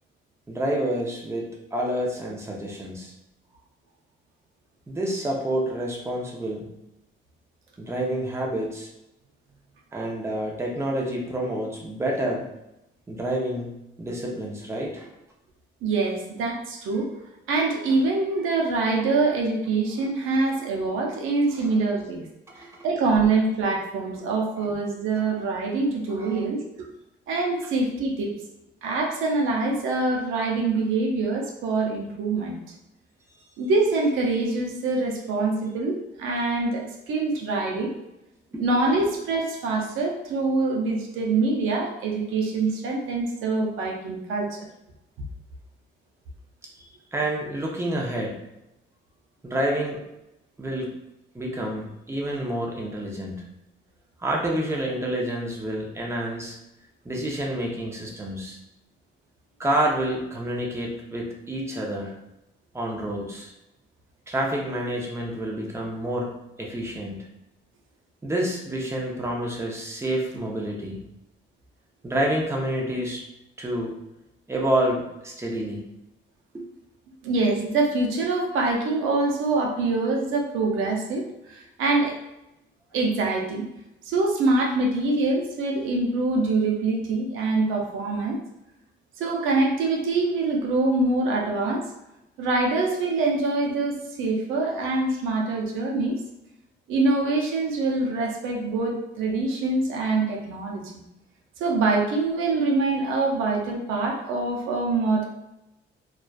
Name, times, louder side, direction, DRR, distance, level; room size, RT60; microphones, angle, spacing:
voice 1, 0.5-3.1 4.9-6.7 7.8-8.9 9.9-12.4 13.1-13.7 14.0-15.1 20.0-20.4 21.5-21.7 24.2-24.3 26.1-26.4 38.5-38.6 46.8-48.3 49.4-50.0 50.6-50.9 51.3-53.4 54.2-56.6 57.0-58.6 59.6-62.1 62.7-63.5 64.3-66.3 66.6-67.2 68.2-71.0 72.0-73.2 73.6-73.9 74.5-75.8 76.5-76.6, right 1 dB, 15° right, -2 dB, 0.6 m, -28 dB
voice 2, 15.8-17.1 17.5-22.2 22.6-26.9 27.3-28.3 28.8-32.6 33.6-37.9 38.6-44.7 77.2-82.2 82.9-83.7 84.0-88.4 89.2-91.9 92.4-96.2 96.9-100.9 101.6-105.3, right 3 dB, 85° right, 0 dB, 0.5 m, -24 dB
2.4 x 2.2 x 2.3 m, 0.89 s
cardioid pair, 90°, 20 cm